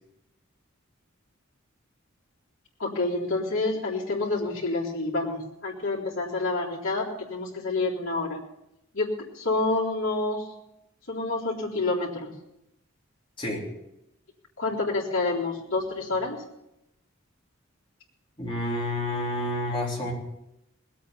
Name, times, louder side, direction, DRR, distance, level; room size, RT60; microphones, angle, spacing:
voice 1, 2.8-8.4 8.9-10.5 11.1-12.3 14.6-16.4, left 3 dB, 65° left, -5 dB, 3.8 m, -28 dB
voice 2, 18.4-20.1, left 1 dB, 25° left, -4 dB, 3.8 m, -29 dB
20.5 x 8.6 x 5.6 m, 0.86 s
head